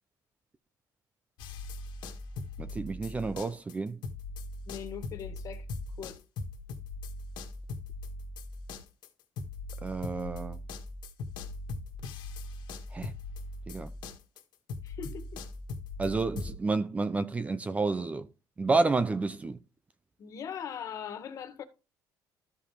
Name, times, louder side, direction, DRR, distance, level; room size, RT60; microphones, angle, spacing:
sound 1, 1.4-3.8 4.0-16.5, left 2 dB, 80° left, 1.6 m, -40 dB
voice 1, 2.6-4.0 9.8-10.6 12.9-13.1 13.7-13.9 16.0-18.3 18.6-19.6, right 3 dB, 20° right, 0.6 m, -30 dB
voice 2, 4.7-5.7 6.0-6.2 14.8-15.4 20.2-21.6, left 8 dB, 45° left, 1.7 m, -40 dB
13.5 x 5.3 x 3.3 m
cardioid pair, 145°, 8 cm